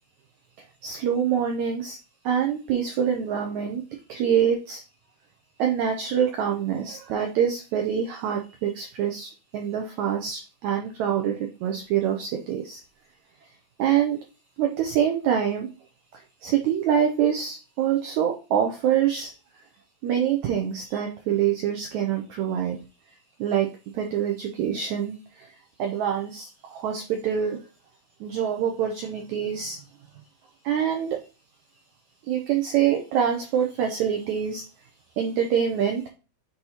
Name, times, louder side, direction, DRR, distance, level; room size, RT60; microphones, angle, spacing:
voice 1, 0.8-2.0 2.2-3.8 4.1-4.8 5.6-12.8 13.8-14.2 14.6-15.7 16.1-19.3 20.0-22.8 23.4-23.7 23.9-25.5 25.8-27.6 28.2-29.8 30.6-31.2 32.3-34.6 35.2-36.1, right 9 dB, 90° right, 3 dB, 1.6 m, -25 dB
8.1 x 2.9 x 4.1 m, 0.32 s
omnidirectional pair, 4.2 m